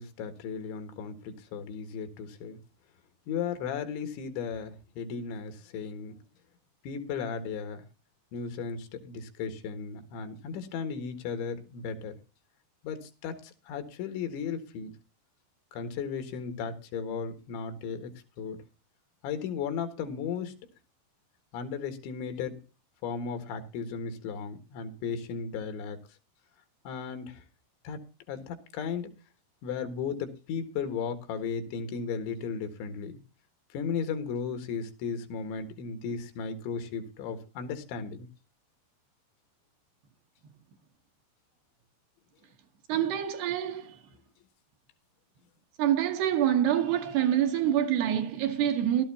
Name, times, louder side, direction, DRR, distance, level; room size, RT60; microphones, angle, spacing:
voice 1, 0.0-2.6 3.3-6.2 6.8-7.8 8.3-12.2 12.8-15.0 15.7-18.6 19.2-20.5 21.5-22.6 23.0-26.0 26.9-27.4 27.8-28.0 28.3-29.1 29.6-33.2 33.7-38.3, left 6 dB, 85° left, 3.9 m, -35 dB
voice 2, 42.9-44.0 45.8-49.0, right 10 dB, 70° right, 3.1 m, -26 dB
16.5 x 13.0 x 2.8 m
omnidirectional pair, 5.2 m